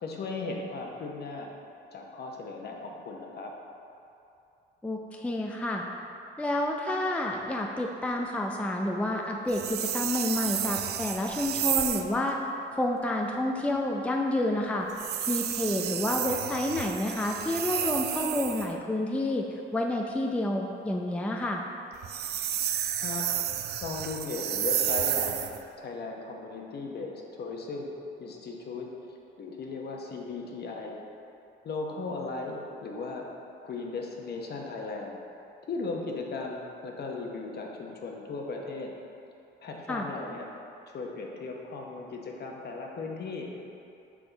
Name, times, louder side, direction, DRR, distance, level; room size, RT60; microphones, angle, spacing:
voice 1, 0.0-1.5 1.9-3.5 23.0-23.3 23.8-27.9 28.2-31.0 31.6-33.2 33.6-35.2 35.7-38.9 39.6-40.5 40.9-43.6, left 3 dB, 55° left, 0 dB, 0.9 m, -37 dB
voice 2, 4.8-5.8 6.4-12.4 12.7-21.6 39.9-40.1, left 1 dB, 5° left, 1 dB, 0.4 m, -29 dB
sound 1, 9.5-12.1 14.9-18.7 21.9-25.6, right 10 dB, 55° right, 0.4 m, -31 dB
6.0 x 4.8 x 4.0 m, 2.8 s
cardioid pair, 90°, 20 cm